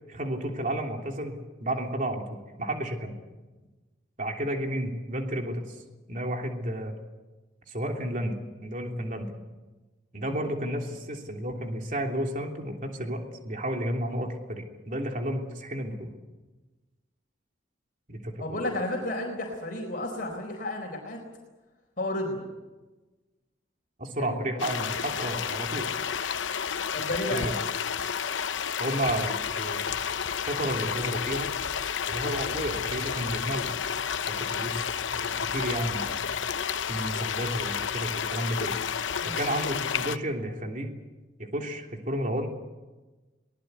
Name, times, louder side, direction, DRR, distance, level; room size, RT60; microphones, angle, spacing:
voice 1, 0.1-2.2 2.6-3.2 4.2-5.8 6.1-6.9 7.7-9.4 10.1-16.1 18.1-18.4 24.0-25.9 27.0-27.5 28.8-29.9 30.5-31.5 32.1-33.8 34.3-34.8 35.1-36.4 36.9-38.7 39.2-40.9 41.4-42.5, right 1 dB, 40° right, 2 dB, 3.2 m, -32 dB
voice 2, 18.4-21.2 22.0-22.4 24.2-24.8 26.9-27.5 39.2-39.4, left 1 dB, 45° left, 1 dB, 4.2 m, -32 dB
sound 1, 24.6-40.2, left 7 dB, 75° left, 0.7 m, -31 dB
23.0 x 19.5 x 8.2 m, 1.2 s
head